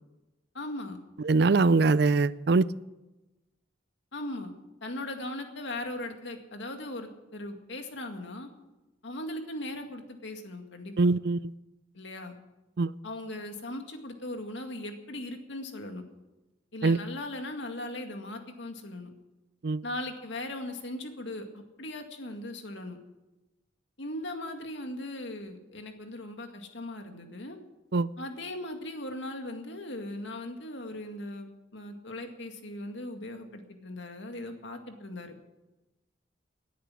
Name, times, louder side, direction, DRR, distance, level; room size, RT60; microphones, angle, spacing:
voice 1, 0.5-1.0 4.1-4.5 4.8-8.5 9.0-11.1 11.9-12.4 13.0-16.0 16.7-19.1 19.8-23.0 24.0-27.6 28.2-35.4, left 1 dB, 70° left, 5 dB, 2.1 m, -39 dB
voice 2, 1.3-2.7 11.0-11.4 12.8-12.9 16.8-17.0 19.6-19.8 27.9-28.1, right 3 dB, 55° right, 18 dB, 0.4 m, -22 dB
18.5 x 10.5 x 6.3 m, 1.0 s
head